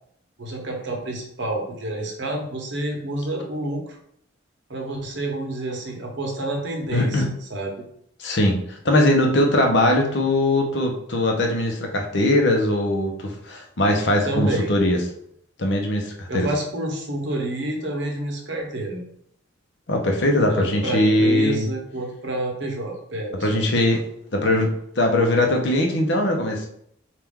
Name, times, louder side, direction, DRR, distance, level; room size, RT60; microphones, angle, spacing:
voice 1, 0.4-4.0 4.7-7.8 14.2-14.7 16.3-19.0 20.5-23.8, right 1 dB, 65° right, 0 dB, 0.9 m, -29 dB
voice 2, 6.9-7.3 8.2-15.0 15.6-16.5 19.9-21.7 23.4-24.0 24.3-26.7, left 1 dB, 65° left, 2 dB, 0.7 m, -20 dB
4.5 x 2.5 x 3.6 m, 0.70 s
head